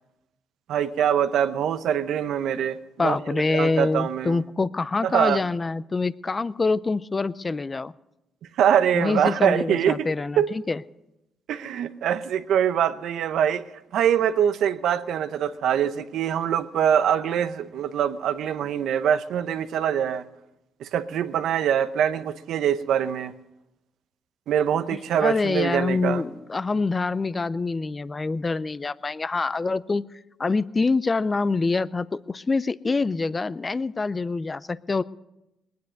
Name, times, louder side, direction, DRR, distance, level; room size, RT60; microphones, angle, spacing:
voice 1, 0.7-4.4 5.0-5.4 8.6-10.1 10.4-10.5 11.5-13.6 13.9-20.2 20.8-23.3 24.5-26.2, right 9 dB, 75° right, 0.8 m, -24 dB
voice 2, 3.0-7.9 8.9-10.8 24.9-30.1 30.4-35.0, left 3 dB, 25° left, 0.5 m, -25 dB
20.5 x 9.5 x 6.5 m
cardioid pair, 90°, 0 cm